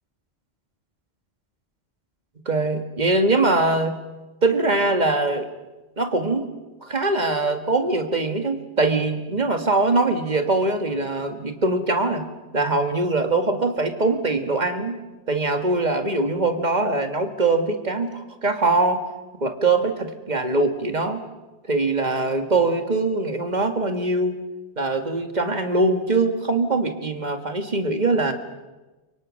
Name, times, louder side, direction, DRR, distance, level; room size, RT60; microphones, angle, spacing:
voice 1, 2.5-3.9 4.4-5.5 6.0-6.5 6.8-12.3 12.5-15.0 15.3-19.0 19.4-21.2 21.7-24.4 24.8-28.3, right 2 dB, 40° right, 6 dB, 2.0 m, -22 dB
28.5 x 24.0 x 6.4 m, 1.2 s
omnidirectional pair, 1.1 m